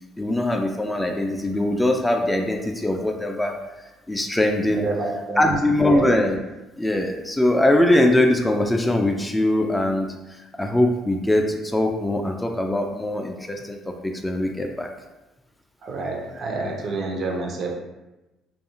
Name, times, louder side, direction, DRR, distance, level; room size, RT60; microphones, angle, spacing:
voice 1, 0.2-3.6 4.1-4.8 5.4-6.4 6.8-14.9, left 1 dB, 10° left, 2 dB, 0.3 m, -22 dB
voice 2, 4.7-6.1 15.8-17.7, right 3 dB, 50° right, 1 dB, 0.5 m, -28 dB
2.3 x 2.3 x 2.8 m, 1.0 s
figure-of-eight pair, 50°, 0 cm